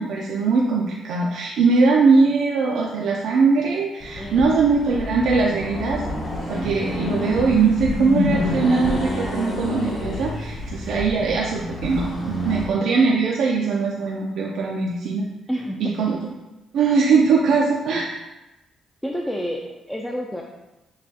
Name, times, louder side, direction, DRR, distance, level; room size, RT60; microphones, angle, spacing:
voice 1, 0.0-6.0 6.5-15.2 15.8-16.2 16.7-18.1, right 4 dB, 80° right, -3 dB, 0.5 m, -21 dB
Accelerating revving vroom, 4.0-12.7, left 1 dB, 50° left, 1.1 m, -30 dB
voice 2, 4.2-4.7 15.5-16.2 19.0-20.4, equal, 5° left, -1 dB, 0.4 m, -30 dB
sound 1, 6.3-9.2 12.0-12.2, left 4 dB, 70° left, 0.3 m, -27 dB
6.4 x 2.3 x 2.8 m, 1.0 s
cardioid pair, 90°, 0 cm